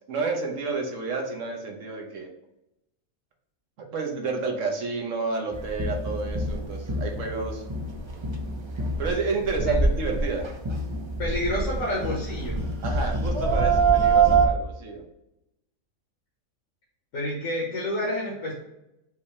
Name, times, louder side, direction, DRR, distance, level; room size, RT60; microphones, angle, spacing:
voice 1, 0.1-2.3 3.9-7.6 9.0-10.5 12.8-15.0, right 4 dB, 65° right, 2 dB, 1.3 m, -30 dB
sound 1, 5.5-14.5, right 4 dB, 50° right, 0.3 m, -25 dB
voice 2, 11.2-12.6 17.1-18.5, left 1 dB, 70° left, -5 dB, 1.6 m, -29 dB
5.5 x 2.8 x 3.1 m, 0.88 s
omnidirectional pair, 1.4 m